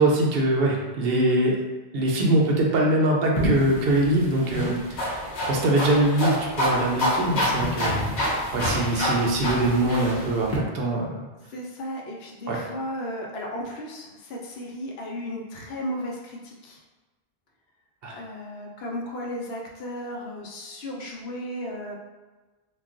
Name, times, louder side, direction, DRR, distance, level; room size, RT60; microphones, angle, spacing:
voice 1, 0.0-1.6 1.9-5.2 5.5-11.3 12.5-12.7 18.0-18.1, right 1 dB, 70° right, -1 dB, 0.8 m, -23 dB
sound 1, 3.3-10.6, equal, 50° left, 0.7 m, -27 dB
voice 2, 11.5-16.8 18.1-21.9, equal, 75° left, -1 dB, 0.8 m, -35 dB
2.3 x 2.3 x 3.7 m, 1.2 s
omnidirectional pair, 1.1 m